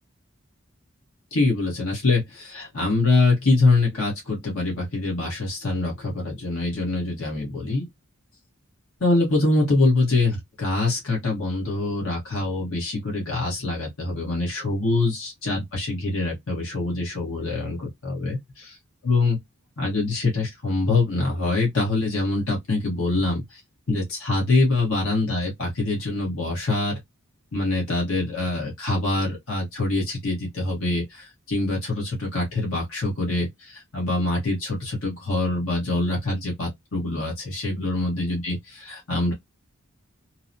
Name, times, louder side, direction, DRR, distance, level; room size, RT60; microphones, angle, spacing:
voice 1, 1.3-7.9 9.0-18.7 19.0-19.4 19.8-23.6 23.9-27.0 27.5-39.3, left 2 dB, 75° left, 1.1 m, -24 dB
2.9 x 2.0 x 2.5 m
head